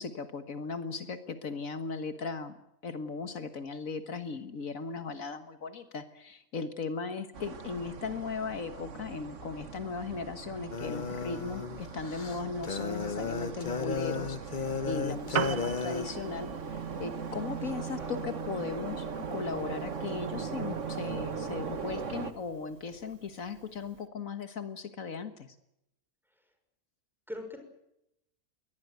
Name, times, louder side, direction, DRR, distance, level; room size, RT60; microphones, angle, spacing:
voice 1, 0.0-2.5 2.8-25.6, left 4 dB, 75° left, 10 dB, 1.9 m, -37 dB
sound 1, 7.3-22.3, right 5 dB, 60° right, 1.8 m, -39 dB
sound 2, 10.7-16.1, left 5 dB, 40° left, 1.1 m, -34 dB
Piano, 15.1-24.1, right 8 dB, 75° right, 1.6 m, -42 dB
voice 2, 17.6-18.2 27.3-27.6, left 1 dB, ahead, 5 dB, 6.0 m, -43 dB
22.5 x 19.0 x 9.3 m, 0.81 s
omnidirectional pair, 1.4 m